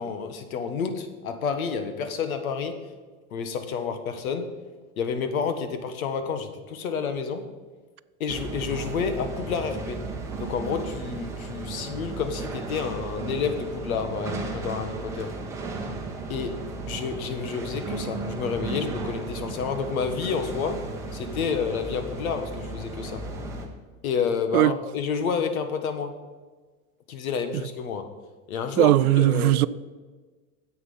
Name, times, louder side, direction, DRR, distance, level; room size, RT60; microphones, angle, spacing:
voice 1, 0.0-2.7 3.3-4.5 5.0-7.4 8.2-10.0 10.4-15.3 16.3-16.5 16.9-20.8 21.1-23.2 24.0-26.1 27.1-28.1 28.5-29.6, left 6 dB, 75° left, 1.6 m, -29 dB
sound 1, 8.3-23.7, right 3 dB, 5° right, 1.1 m, -35 dB
voice 2, 28.8-29.7, right 15 dB, 85° right, 0.6 m, -18 dB
9.8 x 8.0 x 5.7 m
supercardioid pair, 160°, 43 cm